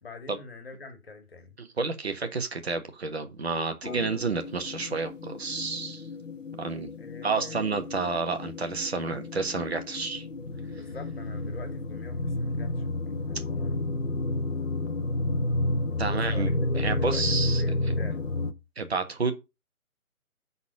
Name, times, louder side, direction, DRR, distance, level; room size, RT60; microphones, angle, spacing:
voice 1, 0.0-1.5 7.0-8.0 10.7-13.8 16.0-18.2, left 3 dB, 40° left, 2.2 m, -45 dB
voice 2, 1.6-6.0 6.6-6.9 7.2-10.3 16.0-16.5 16.8-17.6 18.8-19.3, right 4 dB, 45° right, 1.5 m, -30 dB
sound 1, 3.8-18.5, left 2 dB, 60° left, 1.1 m, -31 dB
9.6 x 4.2 x 5.3 m
figure-of-eight pair, 145°, 43 cm